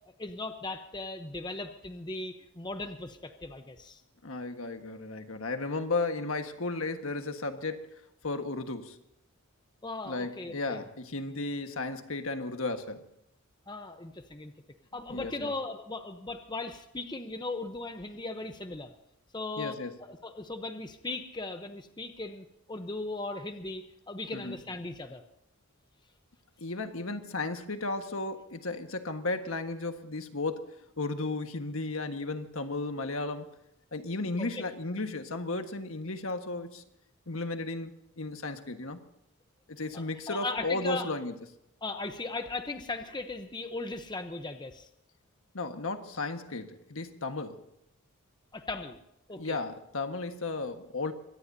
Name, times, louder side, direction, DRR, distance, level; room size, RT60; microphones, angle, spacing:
voice 1, 0.2-4.0 9.8-10.8 13.7-14.5 14.9-18.9 19.3-19.8 20.1-25.2 34.4-34.6 39.9-41.1 41.8-44.9 48.5-49.0 49.3-49.6, left 2 dB, 20° left, 7 dB, 0.8 m, -38 dB
voice 2, 4.2-9.0 10.0-13.1 15.1-15.5 19.6-20.0 24.3-24.6 26.6-33.5 33.9-36.8 37.3-39.0 39.7-41.3 45.5-47.6 49.3-51.1, left 3 dB, 65° left, 7 dB, 1.5 m, -34 dB
24.0 x 18.0 x 2.8 m, 0.79 s
head